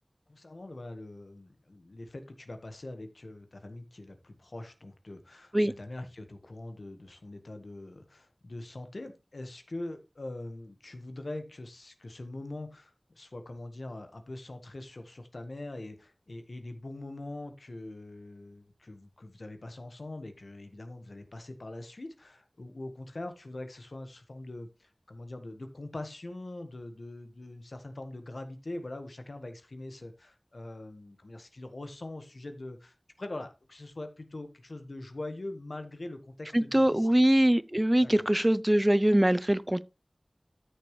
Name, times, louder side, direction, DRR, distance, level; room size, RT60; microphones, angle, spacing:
voice 1, 0.3-37.2 38.0-38.2, left 2 dB, 85° left, 1.4 m, -43 dB
voice 2, 36.5-39.8, right 1 dB, 20° right, 0.5 m, -23 dB
13.0 x 6.7 x 3.2 m
wide cardioid pair, 45°, 0 cm